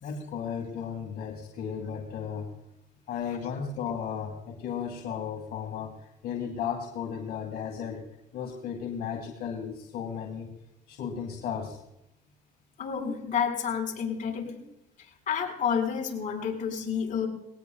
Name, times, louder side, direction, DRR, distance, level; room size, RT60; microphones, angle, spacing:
voice 1, 0.0-2.5 3.1-8.0 8.3-10.5 10.9-11.8, left 7 dB, 75° left, 1 dB, 2.2 m, -35 dB
voice 2, 12.8-14.6 15.3-17.3, left 7 dB, 50° left, 0 dB, 4.9 m, -29 dB
20.0 x 18.0 x 2.4 m, 0.85 s
cardioid pair, 110°, 17 cm